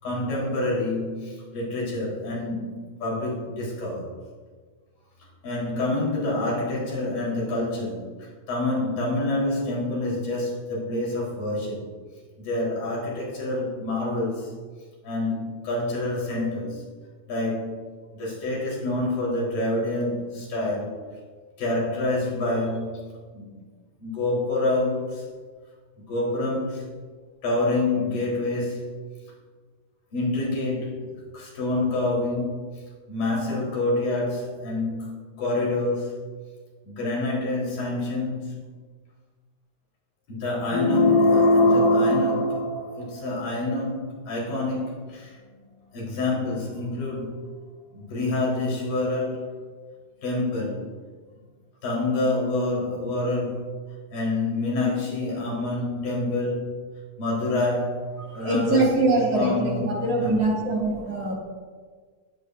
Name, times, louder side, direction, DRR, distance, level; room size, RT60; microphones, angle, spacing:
voice 1, 0.0-4.1 5.4-11.9 12.4-14.6 15.0-16.9 17.3-17.8 18.1-21.0 21.6-23.0 23.3-23.6 24.0-25.3 26.0-26.9 27.4-29.0 30.1-32.7 33.1-36.3 36.8-38.7 40.3-45.4 45.9-47.5 47.9-49.6 50.2-50.9 51.8-56.8 57.2-60.6, left 2 dB, 80° left, -4 dB, 6.4 m, -27 dB
sound 1, 40.7-43.4, left 1 dB, 45° left, 1.9 m, -20 dB
voice 2, 58.3-61.3, right 2 dB, 50° right, -3 dB, 3.7 m, -23 dB
21.0 x 15.5 x 2.8 m, 1.5 s
omnidirectional pair, 3.9 m